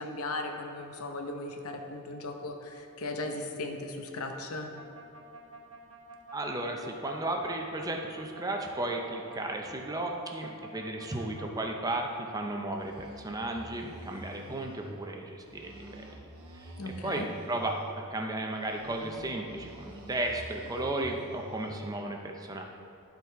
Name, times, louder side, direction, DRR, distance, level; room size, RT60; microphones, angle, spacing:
voice 1, 0.0-4.7 16.8-17.3, left 2 dB, 80° left, 3 dB, 0.8 m, -37 dB
sound 1, 4.8-12.4 12.7-15.0 15.4-17.9 18.5-21.9, right 1 dB, 85° right, 1.0 m, -48 dB
voice 2, 6.3-22.6, right 2 dB, 15° right, 2 dB, 0.6 m, -34 dB
11.0 x 4.0 x 4.5 m, 2.7 s
head